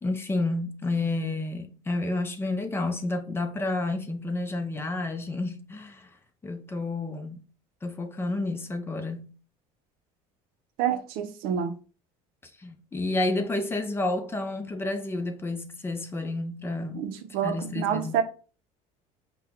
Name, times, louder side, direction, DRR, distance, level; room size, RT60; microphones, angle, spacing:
voice 1, 0.0-6.1 6.4-7.4 7.8-9.3 12.6-17.1 17.4-18.2, left 2 dB, 15° left, 0.6 m, -30 dB
voice 2, 10.8-11.8 16.9-18.2, right 8 dB, 75° right, 0.6 m, -28 dB
5.6 x 2.3 x 3.6 m
cardioid pair, 130°, 15 cm